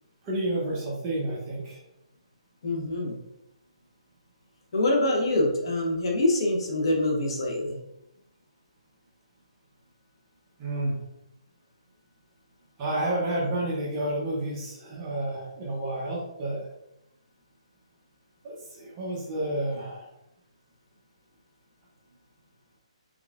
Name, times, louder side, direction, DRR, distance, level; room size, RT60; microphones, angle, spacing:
voice 1, 0.2-1.8 10.6-10.9 12.8-16.6 18.4-20.1, right 1 dB, 15° right, -4 dB, 0.6 m, -30 dB
voice 2, 2.6-3.2 4.7-7.8, left 2 dB, 45° left, -1 dB, 0.9 m, -25 dB
3.8 x 3.5 x 2.4 m, 0.85 s
hypercardioid pair, 170°, 4 cm